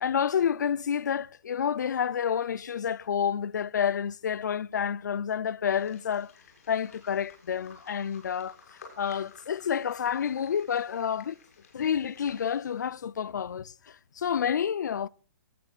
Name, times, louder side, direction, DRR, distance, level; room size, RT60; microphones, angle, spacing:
voice 1, 0.0-6.3 6.7-8.5 9.0-11.4 11.7-15.1, left 8 dB, 75° left, 0.6 m, -29 dB
sound 1, 5.7-13.0, left 5 dB, 50° left, 6.6 m, -54 dB
22.5 x 18.5 x 2.5 m
hypercardioid pair, 175°, 10 cm